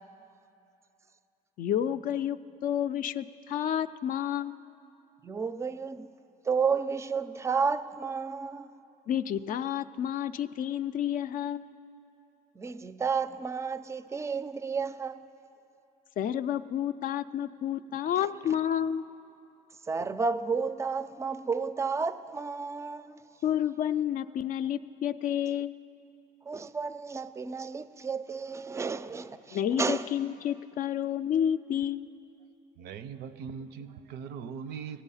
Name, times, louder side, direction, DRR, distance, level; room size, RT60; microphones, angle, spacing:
voice 1, 1.6-4.6 9.1-11.7 16.2-19.0 23.4-25.8 29.5-32.1, left 10 dB, 55° left, 0.4 m, -30 dB
voice 2, 5.2-6.1 6.4-8.8 12.6-15.3 19.9-23.2 26.5-30.1, right 5 dB, 15° right, 0.4 m, -32 dB
voice 3, 32.8-35.0, right 7 dB, 75° right, 0.5 m, -40 dB
17.5 x 8.1 x 5.5 m
cardioid pair, 110°, 17 cm